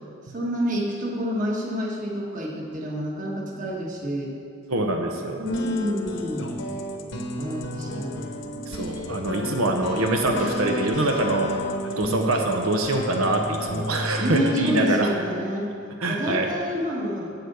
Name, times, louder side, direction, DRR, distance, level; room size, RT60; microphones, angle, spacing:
voice 1, 0.3-4.3 5.4-6.5 7.4-8.2 14.2-15.7 16.1-17.3, equal, 40° right, -2 dB, 1.5 m, -28 dB
voice 2, 4.7-5.5 8.7-11.5 12.0-15.1 16.0-16.5, right 2 dB, 90° right, 2 dB, 0.9 m, -24 dB
sound 1, 5.5-14.9, left 1 dB, 60° left, 0.9 m, -32 dB
8.4 x 8.1 x 6.8 m, 2.5 s
head